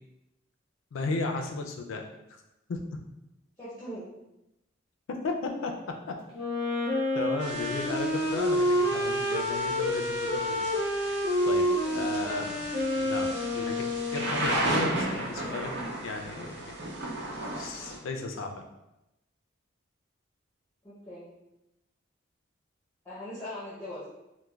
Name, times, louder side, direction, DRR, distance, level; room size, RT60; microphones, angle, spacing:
voice 1, 0.9-2.0 2.3-2.4 2.7-2.8 5.2-5.7 7.1-10.5 11.5-12.6 13.0-16.8 17.6-18.5, left 3 dB, 85° left, 3 dB, 0.4 m, -34 dB
voice 2, 3.6-4.1 11.8-12.3 20.8-21.3 23.0-24.0, equal, 15° left, -10 dB, 0.6 m, -41 dB
Wind instrument woodwind instrument, 6.3-14.7, left 1 dB, 30° right, 0.8 m, -28 dB
Thunder / Rain, 7.4-18.0, right 2 dB, 55° right, 0.5 m, -35 dB
3.2 x 2.1 x 2.3 m, 0.91 s
head